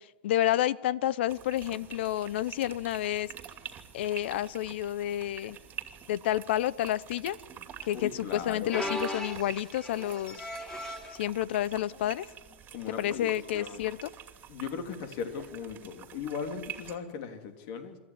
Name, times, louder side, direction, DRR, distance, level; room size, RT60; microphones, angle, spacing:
voice 1, 0.0-3.3 3.9-5.6 6.1-7.4 7.9-10.5 11.2-12.3 12.9-14.1, left 13 dB, 65° left, 21 dB, 0.8 m, -30 dB
sound 1, 1.3-17.0, right 9 dB, 30° right, 2.6 m, -47 dB
voice 2, 7.9-8.9 12.7-13.8 14.5-18.0, left 6 dB, 50° left, 7 dB, 3.3 m, -38 dB
sound 2, 8.7-11.2 11.9-12.2 12.5-12.6 13.5-13.8 15.4-15.5, left 1 dB, 10° left, 3.0 m, -37 dB
24.5 x 14.0 x 9.8 m, 1.2 s
hypercardioid pair, 125°, 6 cm